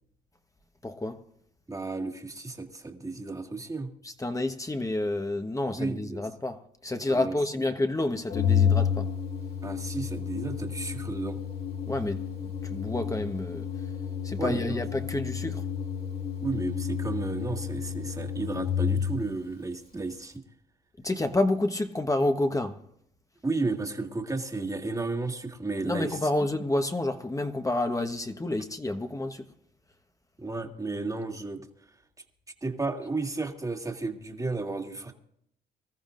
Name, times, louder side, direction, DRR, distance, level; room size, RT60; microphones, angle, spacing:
voice 1, 0.8-1.2 4.0-9.1 11.9-12.2 12.6-13.7 14.2-15.6 21.0-22.8 25.8-29.4, left 2 dB, 15° left, 1.2 m, -29 dB
voice 2, 1.7-3.9 5.8-6.2 7.1-7.3 9.6-11.4 14.3-14.8 16.4-20.3 23.4-26.2 30.4-31.7 32.6-35.1, right 3 dB, 15° right, 2.0 m, -33 dB
Organ, 8.3-19.3, left 8 dB, 50° left, 2.8 m, -30 dB
25.0 x 14.0 x 2.6 m
cardioid pair, 90°, 20 cm